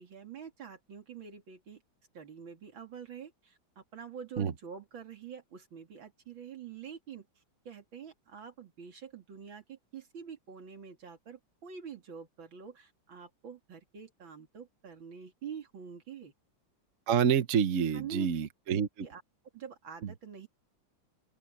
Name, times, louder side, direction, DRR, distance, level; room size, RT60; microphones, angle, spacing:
voice 1, 0.0-1.8 2.1-7.3 7.6-16.3 17.9-18.3 19.0-19.2 19.5-20.5, right 7 dB, 85° right, 3.4 m, -46 dB
voice 2, 17.1-19.1 20.0-20.1, right 7 dB, 50° right, 1.2 m, -28 dB
open air
omnidirectional pair, 2.1 m